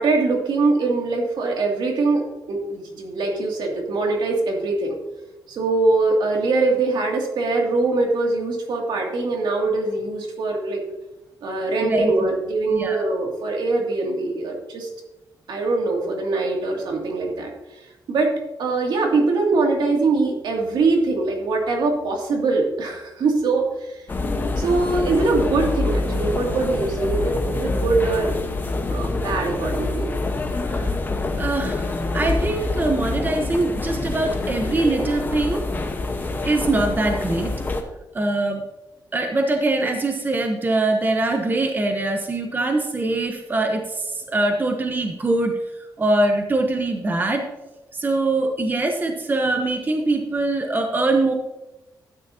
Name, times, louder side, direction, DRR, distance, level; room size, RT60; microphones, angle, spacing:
voice 1, 0.0-2.2 2.5-5.0 5.5-10.8 11.4-14.9 15.5-17.5 18.1-18.3 18.6-24.0 24.6-28.4 28.9-30.2, right 3 dB, 75° right, 0 dB, 2.5 m, -22 dB
voice 2, 12.7-13.1 30.6-30.9 31.4-35.6 36.4-37.5 38.1-38.6 39.1-45.6 46.0-47.5 47.9-51.3, right 2 dB, 25° right, 4 dB, 1.0 m, -23 dB
sound 1, 24.1-37.8, left 2 dB, 25° left, 1.1 m, -26 dB
12.5 x 9.4 x 2.8 m, 1.0 s
wide cardioid pair, 135°, 8 cm